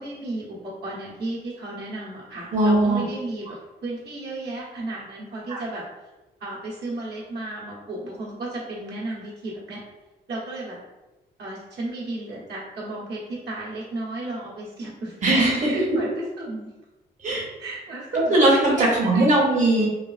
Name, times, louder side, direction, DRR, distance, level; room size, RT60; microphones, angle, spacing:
voice 1, 0.0-5.8 6.4-9.8 10.3-10.8 11.4-15.3 15.6-16.7 17.6-18.4 18.8-19.3, right 2 dB, 70° right, -5 dB, 1.0 m, -34 dB
voice 2, 2.5-3.0 5.5-5.6 15.2-16.0 17.2-17.4 18.3-19.9, right 1 dB, 45° right, -4 dB, 0.8 m, -19 dB
3.2 x 2.4 x 2.4 m, 1.1 s
cardioid pair, 65°, 18 cm